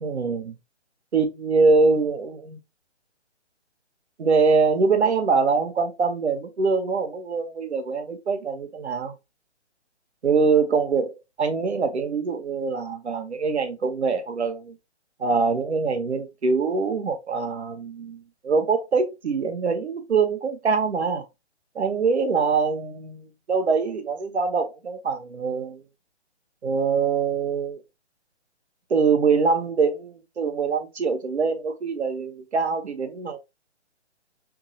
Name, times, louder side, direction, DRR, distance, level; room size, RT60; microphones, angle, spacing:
voice 1, 0.0-0.5 1.1-2.6 4.2-9.1 10.2-14.7 15.2-21.2 21.7-25.8 26.6-27.8 28.9-33.4, right 4 dB, 70° right, 1.1 m, -24 dB
3.6 x 2.9 x 2.7 m
figure-of-eight pair, 140°, 35 cm